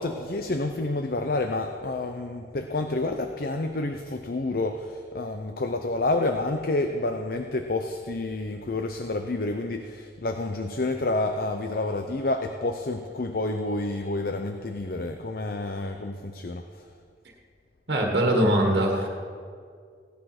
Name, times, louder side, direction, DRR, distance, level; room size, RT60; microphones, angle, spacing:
voice 1, 0.0-16.9, left 2 dB, 55° left, 6 dB, 0.7 m, -29 dB
voice 2, 17.9-19.1, right 1 dB, 70° right, 1 dB, 1.6 m, -22 dB
16.5 x 10.5 x 6.0 m, 2.2 s
head